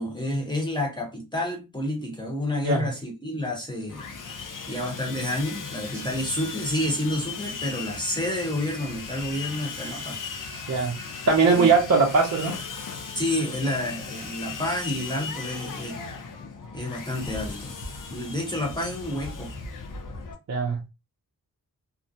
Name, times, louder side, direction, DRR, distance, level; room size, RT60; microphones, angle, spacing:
voice 1, 0.0-4.0 4.7-10.2 10.7-10.8 11.5-11.7 13.1-16.0 16.7-17.7 18.1-19.5, left 1 dB, 10° left, 0.9 m, -29 dB
Sawing, 3.9-20.3, left 4 dB, 60° left, 0.6 m, -37 dB
voice 2, 11.3-12.6 20.5-20.8, right 4 dB, 50° right, 0.5 m, -20 dB
2.4 x 2.0 x 2.7 m
wide cardioid pair, 105°, 36 cm